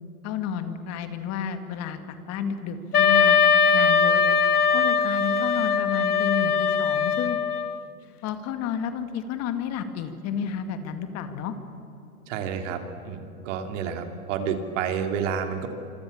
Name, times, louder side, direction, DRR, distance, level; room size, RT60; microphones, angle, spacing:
voice 1, 0.2-3.4 3.7-4.2 4.7-7.4 8.2-11.5, left 7 dB, 35° left, 8 dB, 2.3 m, -31 dB
Wind instrument woodwind instrument, 2.9-7.8, left 6 dB, 85° left, 1.3 m, -21 dB
voice 2, 12.3-15.7, right 7 dB, 55° right, 6 dB, 3.3 m, -30 dB
26.5 x 26.0 x 7.2 m, 2.9 s
hypercardioid pair, 120°, 44 cm